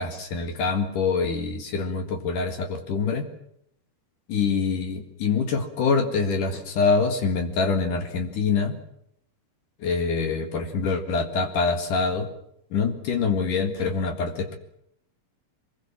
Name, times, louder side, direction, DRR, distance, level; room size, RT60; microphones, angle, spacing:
voice 1, 0.0-3.3 4.3-8.8 9.8-12.3 12.7-14.6, left 4 dB, 60° left, 6 dB, 3.4 m, -25 dB
25.0 x 21.5 x 7.4 m, 0.73 s
omnidirectional pair, 4.2 m